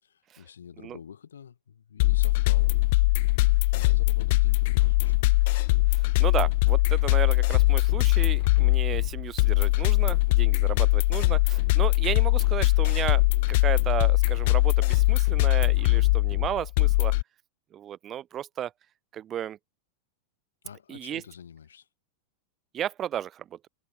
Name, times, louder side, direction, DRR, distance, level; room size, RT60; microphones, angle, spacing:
voice 1, 0.0-2.8 3.3-5.2 15.9-16.2 20.6-21.9, left 8 dB, 65° left, 7.9 m, -47 dB
sound 1, 2.0-17.2, left 22 dB, 50° left, 0.4 m, -22 dB
voice 2, 5.9-17.1 17.7-18.7 19.1-19.6 20.9-21.2 22.7-23.7, right 10 dB, 30° right, 2.2 m, -34 dB
figure-of-eight pair, 90°, 0 cm